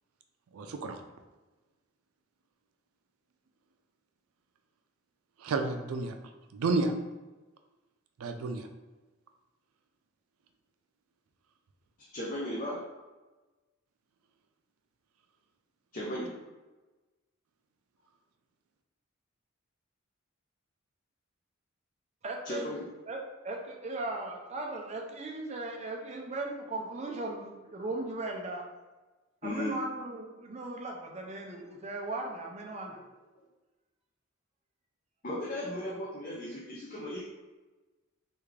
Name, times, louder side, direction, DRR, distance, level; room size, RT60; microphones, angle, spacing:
voice 1, 0.5-1.0 5.4-6.2 6.5-6.9 8.2-8.7, right 3 dB, 85° right, 6 dB, 0.4 m, -31 dB
voice 2, 12.1-12.8 15.9-16.3 22.4-22.9 29.4-29.7 35.2-37.2, left 1 dB, 40° left, -5 dB, 0.5 m, -36 dB
voice 3, 22.2-22.6 23.1-23.2 23.4-28.7 29.4-33.0, right 2 dB, 30° right, 0 dB, 0.5 m, -37 dB
3.4 x 2.4 x 3.2 m, 1.2 s
head